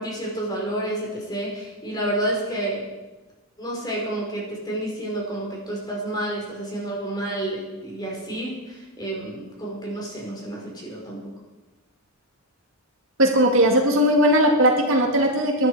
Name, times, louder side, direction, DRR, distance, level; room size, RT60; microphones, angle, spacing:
voice 1, 0.0-2.9 3.6-11.3, right 1 dB, 20° left, -2 dB, 5.1 m, -30 dB
voice 2, 13.2-15.7, equal, 65° right, 2 dB, 2.3 m, -18 dB
22.0 x 11.5 x 5.0 m, 1.1 s
head